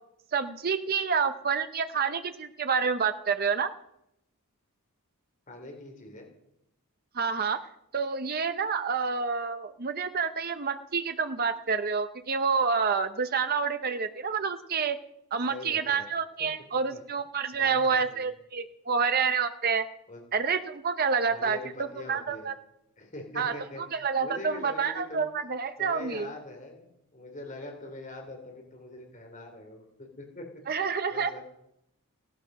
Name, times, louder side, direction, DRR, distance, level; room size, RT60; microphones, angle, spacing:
voice 1, 0.3-3.7 7.1-7.7 7.9-15.0 15.3-19.9 20.3-21.6 22.1-22.6 23.4-23.5 23.9-26.3 30.7-31.3, right 5 dB, 45° right, 9 dB, 0.8 m, -28 dB
voice 2, 5.5-6.3 15.5-16.0 16.4-16.5 16.9-17.0 17.6-18.3 20.1-20.2 21.3-22.5 23.0-25.3 25.8-30.5 31.1-31.4, left 2 dB, 35° left, 3 dB, 3.1 m, -43 dB
17.0 x 12.5 x 6.6 m, 0.82 s
head